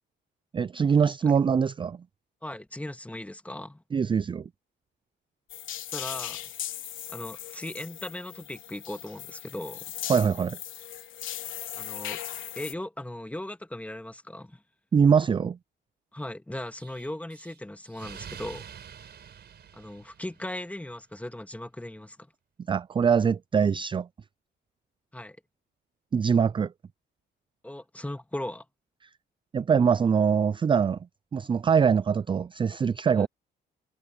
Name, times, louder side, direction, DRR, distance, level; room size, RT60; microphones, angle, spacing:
voice 1, 0.5-2.0 3.9-4.5 10.1-10.6 14.9-15.6 22.7-24.1 26.1-26.7 29.5-31.0 31.3-33.3, right 6 dB, 25° right, 0.3 m, -23 dB
voice 2, 2.4-3.8 5.9-6.5 7.1-9.9 11.8-12.2 12.6-14.6 16.1-18.7 19.7-22.3 25.1-25.4 27.6-28.7 33.2-33.3, left 1 dB, 5° left, 2.0 m, -38 dB
sound 1, 5.5-12.7, left 12 dB, 80° left, 3.5 m, -38 dB
Explosion, 16.8-20.6, right 8 dB, 55° right, 4.6 m, -46 dB
cardioid pair, 90°, 20 cm